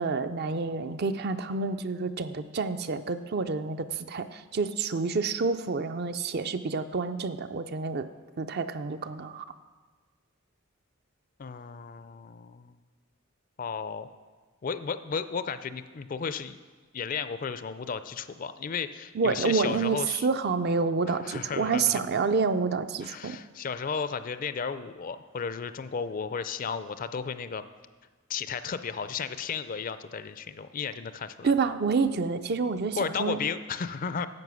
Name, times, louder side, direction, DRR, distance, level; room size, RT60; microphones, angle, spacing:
voice 1, 0.0-8.1 8.4-9.4 19.1-23.4 31.4-33.4, right 4 dB, 50° right, 10 dB, 0.4 m, -28 dB
voice 2, 11.4-12.8 13.6-14.1 14.6-16.6 16.9-20.3 21.2-22.0 23.0-27.6 28.3-31.5 33.0-34.3, left 6 dB, 40° left, 12 dB, 0.4 m, -34 dB
10.5 x 7.7 x 6.2 m, 1.4 s
head